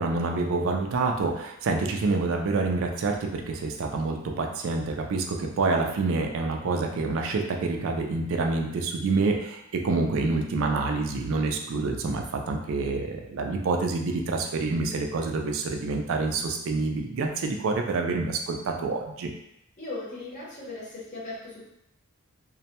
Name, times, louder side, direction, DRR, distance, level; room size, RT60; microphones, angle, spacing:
voice 1, 0.0-19.3, right 3 dB, 65° right, 3 dB, 0.3 m, -27 dB
voice 2, 19.8-21.7, left 2 dB, 35° left, -7 dB, 0.7 m, -38 dB
2.1 x 2.1 x 2.8 m, 0.81 s
head